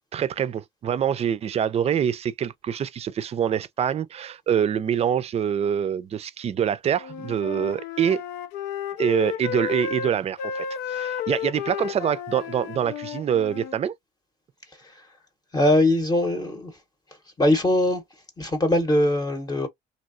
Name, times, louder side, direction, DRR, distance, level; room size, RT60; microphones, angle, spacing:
voice 1, 0.1-8.2 9.0-13.9, right 8 dB, 40° right, 0.4 m, -25 dB
Wind instrument woodwind instrument, 7.0-13.8, left 8 dB, 90° left, 0.5 m, -32 dB
voice 2, 15.5-16.7 17.4-18.0 18.4-19.7, left 1 dB, 25° left, 0.8 m, -21 dB
3.1 x 2.7 x 2.5 m
cardioid pair, 110°, 17 cm